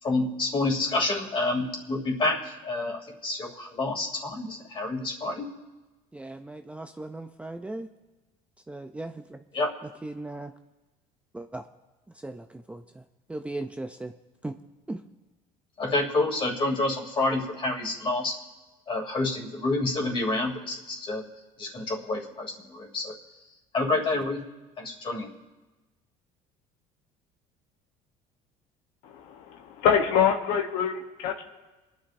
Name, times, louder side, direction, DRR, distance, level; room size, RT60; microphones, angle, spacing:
voice 1, 0.0-5.5 9.5-9.7 15.8-18.4 18.9-21.2 21.6-23.2 23.7-24.4 24.8-25.3, left 2 dB, 35° left, -1 dB, 2.9 m, -28 dB
voice 2, 6.1-7.9 8.7-9.4 10.0-10.5 11.3-11.7 12.1-13.0 13.3-14.2 14.4-14.6 14.9-15.0, right 2 dB, 10° right, 7 dB, 0.5 m, -37 dB
voice 3, 29.0-31.4, left 7 dB, 80° left, 4 dB, 1.0 m, -25 dB
26.5 x 10.5 x 2.6 m, 1.2 s
cardioid pair, 115°, 15 cm